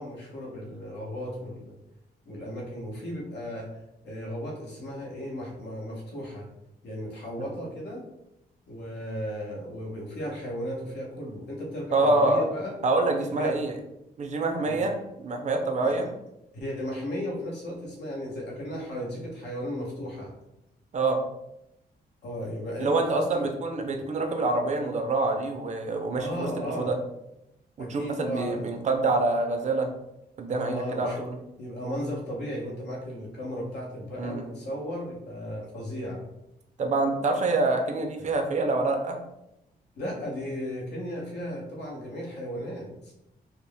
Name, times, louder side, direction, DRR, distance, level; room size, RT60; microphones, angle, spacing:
voice 1, 0.0-1.7 2.2-3.8 4.0-6.5 6.8-8.1 8.7-12.8 13.2-13.6 14.6-14.9 15.8-16.0 16.5-20.3 22.2-23.5 26.2-26.9 27.8-28.7 30.5-31.3 31.6-36.2 40.0-43.1, equal, 90° left, -2 dB, 1.1 m, -35 dB
voice 2, 11.9-12.4 12.8-13.7 14.2-16.1 20.9-21.2 22.8-26.5 26.8-27.0 27.8-29.9 30.4-31.3 34.2-34.4 36.8-39.2, right 2 dB, 45° right, 5 dB, 0.5 m, -26 dB
4.2 x 2.1 x 3.4 m, 0.86 s
wide cardioid pair, 155°, 17 cm